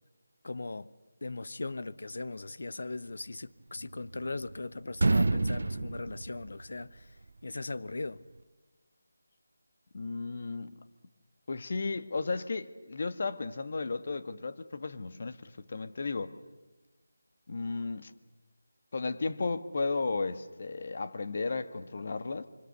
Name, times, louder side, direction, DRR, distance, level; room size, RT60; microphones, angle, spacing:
voice 1, 0.4-0.9 1.2-7.1 7.4-8.2, left 3 dB, 65° left, 1.1 m, -39 dB
sound 1, 3.8-4.6 4.9-7.0, right 2 dB, 65° right, 1.2 m, -29 dB
voice 2, 9.9-10.7 11.5-16.3 17.5-18.1 18.9-22.5, left 3 dB, 45° left, 1.6 m, -34 dB
26.0 x 25.5 x 6.9 m
figure-of-eight pair, 165°, 0 cm